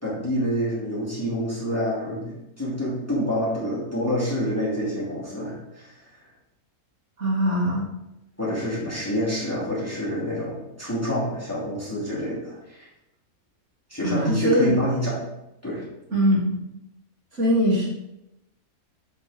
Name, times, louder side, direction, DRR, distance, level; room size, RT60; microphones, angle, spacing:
voice 1, 0.0-6.0 8.4-12.9 13.9-15.2 15.6-15.8, equal, 10° left, -8 dB, 2.5 m, -27 dB
voice 2, 7.2-7.9 14.0-14.7 16.1-16.6 17.3-17.9, equal, 55° right, -5 dB, 2.1 m, -22 dB
6.5 x 5.1 x 4.9 m, 0.88 s
omnidirectional pair, 1.5 m